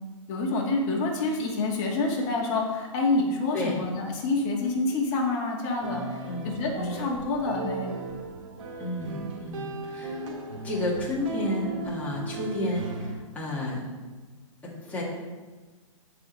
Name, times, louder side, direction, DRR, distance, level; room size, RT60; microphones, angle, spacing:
voice 1, 0.3-7.9, left 3 dB, 30° left, -2 dB, 1.7 m, -27 dB
sound 1, 5.8-13.1, right 3 dB, 70° right, 2.2 m, -37 dB
voice 2, 8.8-10.2 10.6-13.8 14.6-15.0, left 1 dB, 10° left, -6 dB, 1.8 m, -31 dB
14.5 x 4.9 x 3.1 m, 1.3 s
hypercardioid pair, 155°, 17 cm